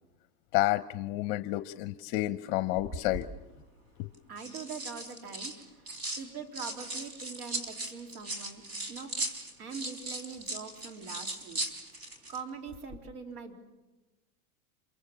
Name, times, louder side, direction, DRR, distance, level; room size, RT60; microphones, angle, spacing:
voice 1, 0.5-3.2 4.0-4.1, left 17 dB, 45° left, 13 dB, 0.8 m, -30 dB
sound 1, 2.8-3.3 4.1-6.2 6.5-12.4 12.7-13.0, right 2 dB, 35° right, 4.2 m, -38 dB
voice 2, 4.3-5.9 6.2-9.1 9.6-11.6 12.3-13.5, right 5 dB, 80° right, 5 dB, 3.8 m, -43 dB
26.5 x 23.0 x 7.3 m, 1.1 s
supercardioid pair, 135°, 43 cm